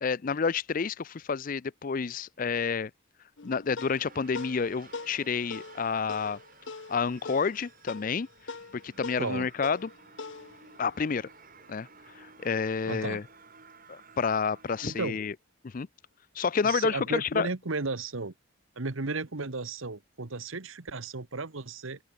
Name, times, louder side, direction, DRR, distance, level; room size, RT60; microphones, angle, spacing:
voice 1, 0.0-2.9 3.4-6.4 6.9-8.3 8.7-9.9 10.8-11.3 11.7-11.9 12.1-13.2 13.9-15.3 15.6-15.9 16.4-17.5, left 5 dB, 40° left, 0.4 m, -29 dB
sound 1, 3.4-12.1, left 4 dB, 65° left, 0.9 m, -44 dB
sound 2, 3.9-15.1, right 4 dB, 40° right, 4.2 m, -54 dB
voice 2, 9.2-9.5 12.9-13.2 14.8-15.2 16.6-18.3 18.8-22.0, right 3 dB, 80° right, 1.3 m, -34 dB
open air
head